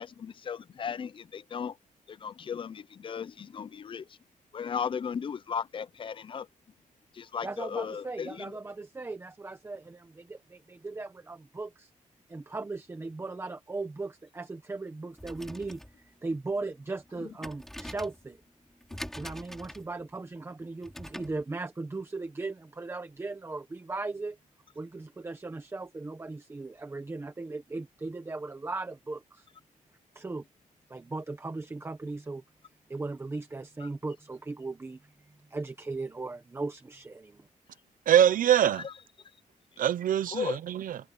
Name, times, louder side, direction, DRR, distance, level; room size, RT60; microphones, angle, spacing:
voice 1, 0.0-1.8 2.1-4.0 4.5-6.5 7.1-8.5 33.8-33.9 38.8-38.9 40.3-40.6, left 7 dB, 35° left, 0.5 m, -36 dB
voice 2, 7.4-11.9 12.3-18.4 19.1-24.4 24.7-29.5 30.1-30.4 30.9-32.4 32.9-37.5, right 3 dB, 15° right, 1.1 m, -38 dB
sound 1, 15.1-21.4, equal, ahead, 6.0 m, -45 dB
voice 3, 38.1-38.8 39.8-41.0, right 10 dB, 80° right, 0.9 m, -23 dB
wide cardioid pair, 170°, 14 cm